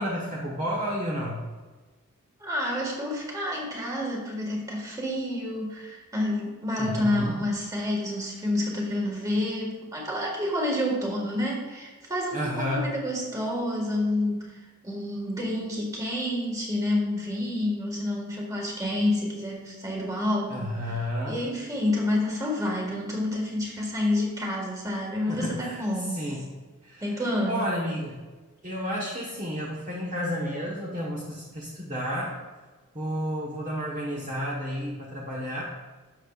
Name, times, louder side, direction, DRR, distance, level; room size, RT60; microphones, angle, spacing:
voice 1, 0.0-1.4 6.8-7.3 12.3-12.8 20.5-21.4 25.3-25.8 26.1-26.4 26.8-27.1 27.5-28.1 28.6-32.3 32.9-35.6, equal, 35° right, -5 dB, 1.2 m, -31 dB
voice 2, 2.4-26.2 27.0-27.7, left 1 dB, 15° right, -2 dB, 1.8 m, -29 dB
12.5 x 6.7 x 2.5 m, 1.3 s
head